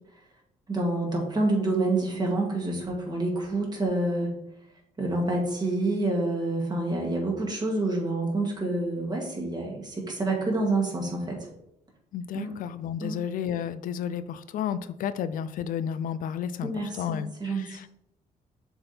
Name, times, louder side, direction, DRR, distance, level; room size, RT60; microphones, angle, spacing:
voice 1, 0.7-4.3 5.0-11.5 12.3-12.6 13.0-13.2 16.6-17.8, right 2 dB, 30° right, -1 dB, 1.9 m, -28 dB
voice 2, 12.1-16.7 17.0-17.9, left 8 dB, 70° left, 14 dB, 0.4 m, -32 dB
6.8 x 3.6 x 4.2 m, 0.79 s
cardioid pair, 130°, 14 cm